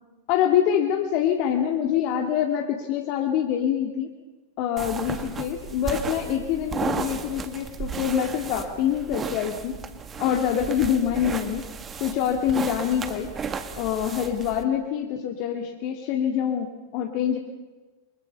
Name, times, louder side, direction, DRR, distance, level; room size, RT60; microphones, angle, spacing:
voice 1, 0.3-4.1 4.6-9.8 10.2-11.7 12.0-13.3 13.8-17.4, left 9 dB, 45° left, 2 dB, 2.1 m, -25 dB
sound 1, 4.8-14.6, right 5 dB, 20° right, 1.9 m, -34 dB
29.0 x 24.5 x 5.7 m, 1.2 s
figure-of-eight pair, 90°, 0 cm